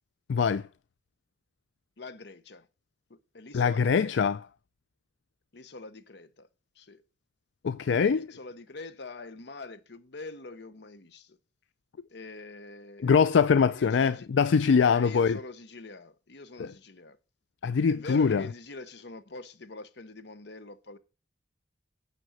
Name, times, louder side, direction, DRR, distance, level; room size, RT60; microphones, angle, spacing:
voice 1, 0.3-0.6 3.5-4.4 7.6-8.3 13.0-15.4 16.6-16.7 17.6-18.4, left 6 dB, 85° left, 0.4 m, -23 dB
voice 2, 2.0-2.7 3.1-4.4 5.5-6.5 6.8-7.0 8.1-11.4 12.1-13.3 13.7-14.3 14.9-17.2 17.9-21.0, left 3 dB, 65° left, 1.0 m, -44 dB
9.2 x 6.3 x 6.3 m
head